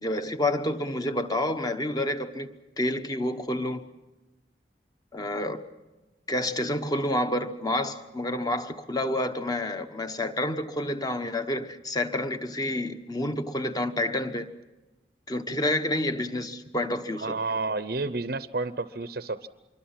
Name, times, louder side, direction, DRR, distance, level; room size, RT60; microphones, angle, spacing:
voice 1, 0.0-2.5 2.8-3.8 5.1-5.6 6.3-14.5 15.3-17.3, left 1 dB, 20° left, 8 dB, 1.1 m, -29 dB
voice 2, 17.2-19.5, right 3 dB, 60° right, 12 dB, 0.7 m, -30 dB
26.0 x 23.0 x 5.9 m, 1.1 s
head